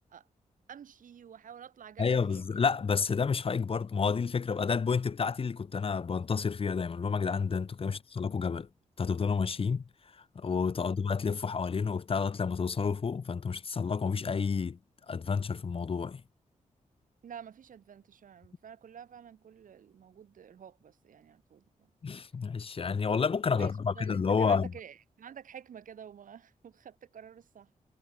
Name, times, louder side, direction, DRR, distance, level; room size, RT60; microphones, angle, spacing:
voice 1, 0.7-2.6 7.8-8.0 10.8-11.0 17.2-21.9 23.6-27.7, right 8 dB, 85° right, 3.3 m, -49 dB
voice 2, 2.0-8.7 9.0-9.8 10.3-14.8 15.1-16.2 22.0-24.7, left 5 dB, 45° left, 1.1 m, -30 dB
wide cardioid pair, 115°, 14 cm